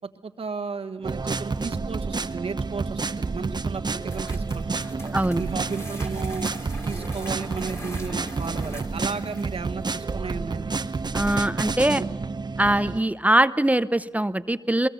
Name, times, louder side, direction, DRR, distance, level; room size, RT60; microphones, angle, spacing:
voice 1, 0.0-6.5 6.8-10.8 11.9-12.1, right 5 dB, 65° right, 6 dB, 1.4 m, -34 dB
sound 1, 1.0-13.0, right 4 dB, 45° right, 0.9 m, -29 dB
sound 2, 4.1-9.7, left 1 dB, 25° left, 3.1 m, -43 dB
voice 2, 5.1-5.4 11.1-12.0 12.6-14.9, right 1 dB, 15° right, 14 dB, 0.7 m, -22 dB
22.5 x 22.0 x 6.9 m, 1.1 s
cardioid pair, 40°, 10 cm